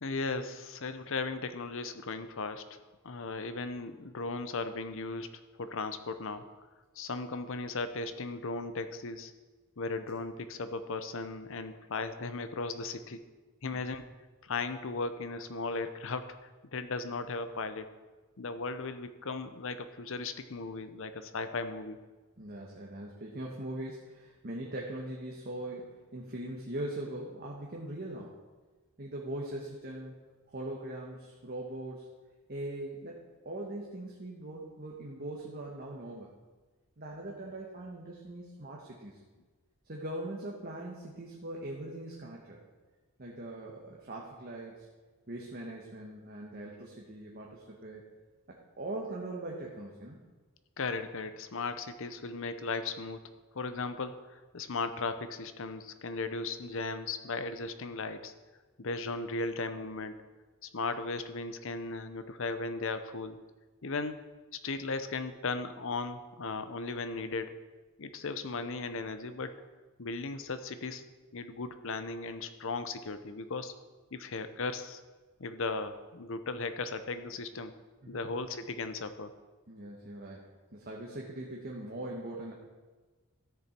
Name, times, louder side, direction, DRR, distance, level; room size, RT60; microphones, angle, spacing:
voice 1, 0.0-2.8 3.0-5.3 5.6-6.6 7.0-9.3 9.8-13.2 13.6-14.1 14.4-16.4 16.7-17.9 18.4-22.0 50.8-53.2 53.5-58.3 58.8-60.2 60.6-63.4 63.8-64.2 64.6-67.6 68.0-69.6 70.0-71.0 71.3-73.7 74.1-75.0 75.4-77.7 78.1-79.3, left 3 dB, 65° left, 10 dB, 0.7 m, -36 dB
voice 2, 22.4-28.4 29.0-30.1 30.5-32.1 32.5-36.3 37.0-39.2 39.8-42.6 43.2-44.9 45.3-48.0 48.5-50.2 78.0-78.3 79.7-82.5, right 1 dB, 45° right, -2 dB, 1.2 m, -41 dB
13.5 x 7.0 x 4.4 m, 1.3 s
head